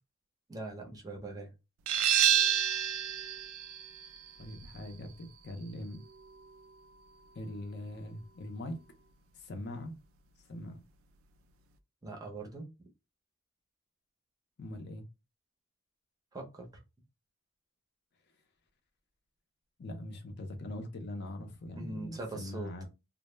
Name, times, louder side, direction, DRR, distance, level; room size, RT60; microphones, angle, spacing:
voice 1, 0.5-1.5 12.0-12.7 16.3-16.7 21.8-22.7, right 2 dB, 20° right, 0.5 m, -41 dB
sound 1, 1.9-7.3, right 9 dB, 70° right, 0.3 m, -31 dB
voice 2, 4.4-6.0 7.3-8.8 9.3-9.9 10.5-10.8 14.6-15.1 19.8-22.9, left 1 dB, 55° left, 0.5 m, -41 dB
2.1 x 2.0 x 3.0 m
head